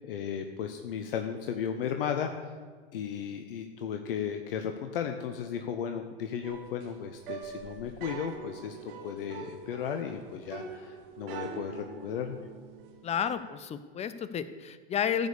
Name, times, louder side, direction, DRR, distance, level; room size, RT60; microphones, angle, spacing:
voice 1, 0.1-2.5 2.9-12.4, left 8 dB, 70° left, 6 dB, 0.9 m, -35 dB
sound 1, 6.4-13.4, right 6 dB, 60° right, 1.5 m, -44 dB
voice 2, 13.0-15.3, left 8 dB, 20° left, 13 dB, 0.7 m, -31 dB
14.0 x 5.3 x 6.7 m, 1.5 s
hypercardioid pair, 90°, 29 cm